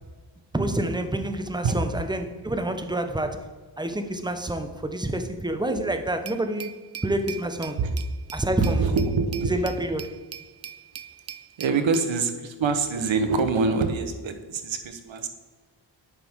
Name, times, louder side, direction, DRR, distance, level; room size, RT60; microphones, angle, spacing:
voice 1, 0.5-3.5 3.8-6.7 7.0-7.8 8.3-9.0 9.5-10.1, right 1 dB, 10° right, 0.8 m, -28 dB
Glass, 6.3-12.1, right 9 dB, 35° right, 0.4 m, -41 dB
voice 2, 8.6-9.7 11.6-15.3, right 4 dB, 70° right, 1.0 m, -25 dB
9.2 x 6.0 x 3.6 m
cardioid pair, 65°, 47 cm